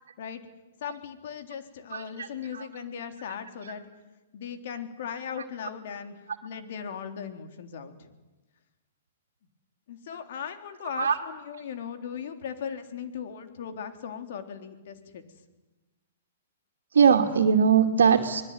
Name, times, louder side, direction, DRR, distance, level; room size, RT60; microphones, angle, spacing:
voice 1, 0.8-3.9 4.3-8.1 9.9-15.2, left 7 dB, 60° left, 7 dB, 3.8 m, -38 dB
voice 2, 1.9-2.7 3.6-3.7 10.8-11.2 16.9-18.4, right 7 dB, 75° right, 0 dB, 2.5 m, -22 dB
25.5 x 20.5 x 9.4 m, 1.1 s
hypercardioid pair, 125°, 0 cm